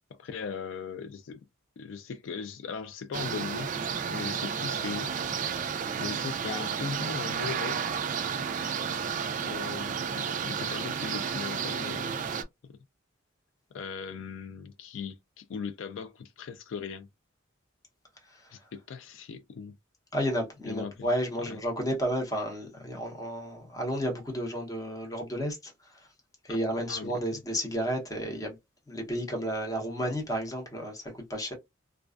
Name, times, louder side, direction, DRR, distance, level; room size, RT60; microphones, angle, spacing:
voice 1, 0.2-1.4 1.8-3.7 4.1-5.1 6.0-7.8 9.4-12.3 13.7-17.1 18.5-19.7 20.7-21.1 21.5-21.6 26.5-26.6 26.9-27.2, left 5 dB, 65° left, 0.3 m, -38 dB
sound 1, 3.1-12.4, right 7 dB, 40° right, 0.3 m, -32 dB
voice 2, 20.1-25.7 26.4-28.6 28.9-31.5, equal, 20° left, 0.8 m, -32 dB
2.3 x 2.3 x 2.4 m
head